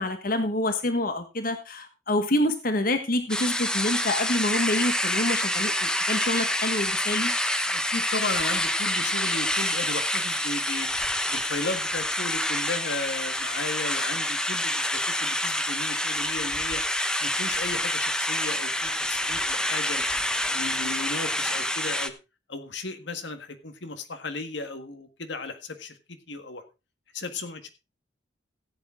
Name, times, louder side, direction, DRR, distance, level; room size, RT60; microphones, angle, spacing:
voice 1, 0.0-7.3, left 1 dB, 50° left, 7 dB, 1.5 m, -27 dB
sound 1, 3.3-22.1, left 1 dB, 5° left, 0.9 m, -27 dB
voice 2, 7.7-10.9 11.3-16.8 17.2-20.0 20.5-22.1 22.5-26.6 27.1-27.7, left 3 dB, 75° left, 8 dB, 1.7 m, -35 dB
15.5 x 8.7 x 3.7 m, 0.27 s
head